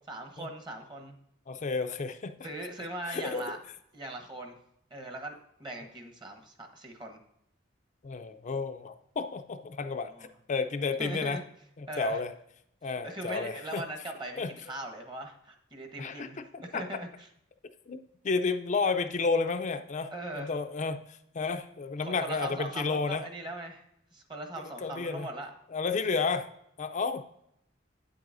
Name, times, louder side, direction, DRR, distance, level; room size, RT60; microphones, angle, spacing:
voice 1, 0.1-1.2 2.4-3.6 3.9-4.6 4.9-7.2 10.1-10.3 11.0-11.4 11.9-12.2 13.0-17.3 20.1-20.5 22.0-23.8 24.1-25.5, right 1 dB, 25° right, 4 dB, 1.1 m, -40 dB
voice 2, 1.5-2.3 3.1-3.4 8.0-10.1 10.5-11.4 11.8-12.3 12.8-13.8 14.4-14.5 16.0-16.3 16.5-16.8 17.9-21.0 21.3-23.2 24.8-25.3 25.7-26.5 26.8-27.2, left 4 dB, 40° left, 8 dB, 0.4 m, -31 dB
8.9 x 7.7 x 2.6 m, 0.75 s
head